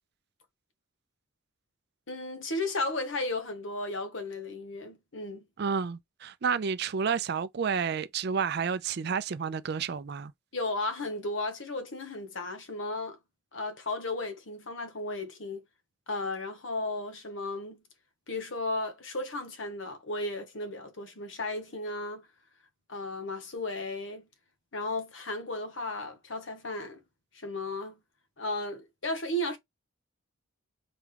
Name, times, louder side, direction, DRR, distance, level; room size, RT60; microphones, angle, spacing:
voice 1, 2.1-5.4 10.5-13.2 13.5-15.6 16.1-17.8 18.3-22.3 22.9-24.3 24.7-27.0 27.3-27.9 28.4-29.6, left 2 dB, 60° left, 1.2 m, -34 dB
voice 2, 5.6-10.3, right 6 dB, 50° right, 0.4 m, -30 dB
4.2 x 3.6 x 3.3 m
head